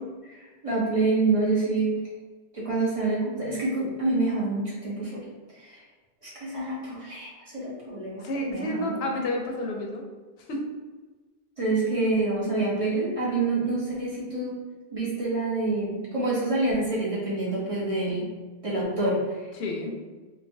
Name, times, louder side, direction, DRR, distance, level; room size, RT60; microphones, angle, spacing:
voice 1, 0.2-1.9 2.5-5.2 5.5-5.8 6.2-9.0 11.6-14.5 14.9-18.3 18.6-19.5, right 2 dB, 35° right, -7 dB, 0.8 m, -27 dB
voice 2, 8.2-10.0 10.5-10.6 19.6-20.0, left 1 dB, 85° left, 1 dB, 0.8 m, -30 dB
3.1 x 2.1 x 2.6 m, 1.3 s
omnidirectional pair, 1.0 m